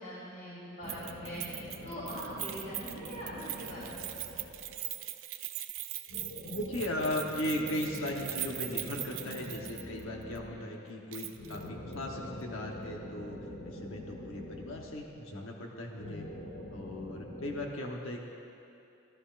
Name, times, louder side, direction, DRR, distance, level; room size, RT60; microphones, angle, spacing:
voice 1, 0.0-4.7 10.5-10.6, equal, 40° left, -9 dB, 2.8 m, -43 dB
sound 1, 0.8-5.0 6.1-10.7 11.3-15.4 16.0-17.7, left 1 dB, 65° left, 1.6 m, -45 dB
Keys jangling, 0.9-10.0 10.3-10.4 11.1-11.6 11.9-12.0, right 14 dB, 85° right, 0.5 m, -41 dB
voice 2, 6.5-13.4 13.7-16.3 16.7-18.2, left 1 dB, 85° left, 0 dB, 1.1 m, -37 dB
14.5 x 12.5 x 2.5 m, 2.8 s
head